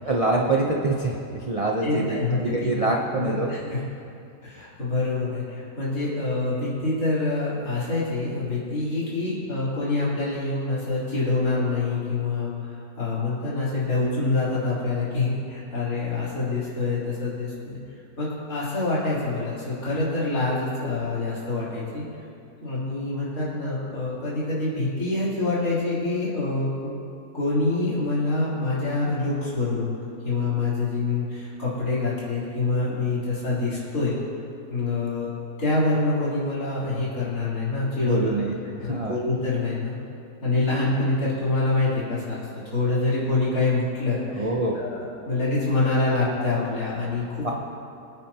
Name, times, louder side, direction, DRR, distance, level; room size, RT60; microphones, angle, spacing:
voice 1, 0.0-3.5 38.0-39.2 44.3-44.8 47.4-47.5, right 2 dB, 35° right, -1 dB, 0.5 m, -25 dB
voice 2, 1.8-2.7 3.1-3.8 4.4-17.8 18.2-22.0 22.6-27.0 27.3-30.0 30.2-34.1 34.7-35.3 35.6-38.3 38.8-39.9 40.4-42.5 42.7-44.5 44.7-47.5, left 3 dB, 55° left, -10 dB, 4.2 m, -26 dB
24.5 x 9.0 x 2.9 m, 2.6 s
omnidirectional pair, 1.8 m